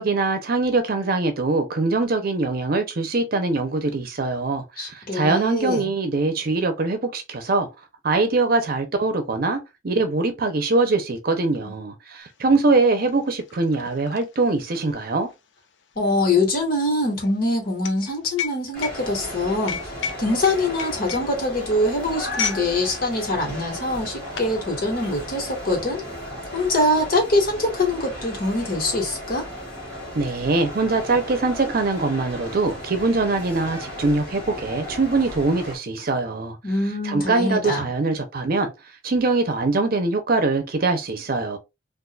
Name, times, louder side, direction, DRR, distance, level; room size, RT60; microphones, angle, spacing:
voice 1, 0.0-7.7 8.0-15.3 30.1-36.6 37.0-38.7 39.0-41.6, right 3 dB, 55° right, 0.6 m, -23 dB
voice 2, 4.8-5.9 15.9-19.8 20.2-26.0 26.5-29.5 36.6-37.9, left 2 dB, 55° left, 1.6 m, -23 dB
sound 1, 12.4-12.5 12.7-22.7 23.0-23.3 23.9-24.6, left 7 dB, 80° left, 0.6 m, -33 dB
sound 2, 18.7-35.8, left 1 dB, 5° left, 2.1 m, -35 dB
3.9 x 2.5 x 2.3 m
head